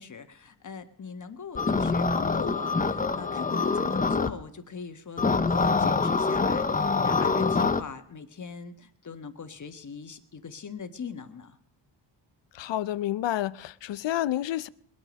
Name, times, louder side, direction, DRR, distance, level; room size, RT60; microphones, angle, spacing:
voice 1, 0.0-11.6, left 5 dB, 40° left, 1.5 m, -41 dB
sound 1, 1.5-4.3 5.2-7.8, left 4 dB, 20° left, 0.7 m, -25 dB
voice 2, 12.5-14.7, left 13 dB, 65° left, 0.6 m, -29 dB
21.5 x 9.1 x 5.2 m
cardioid pair, 100°, 47 cm